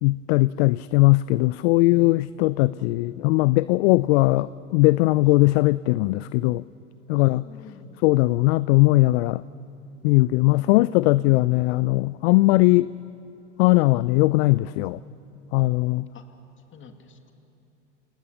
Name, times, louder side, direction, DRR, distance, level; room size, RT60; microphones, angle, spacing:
voice 1, 0.0-6.6 7.1-7.4 8.0-9.4 10.0-12.9 13.6-15.0 15.5-16.1, left 20 dB, 60° left, 18 dB, 0.5 m, -19 dB
voice 2, 2.7-3.3 7.2-8.2 16.1-16.2 16.7-17.3, left 6 dB, 35° left, 6 dB, 2.4 m, -48 dB
28.5 x 18.5 x 7.0 m, 2.7 s
hypercardioid pair, 85°, 36 cm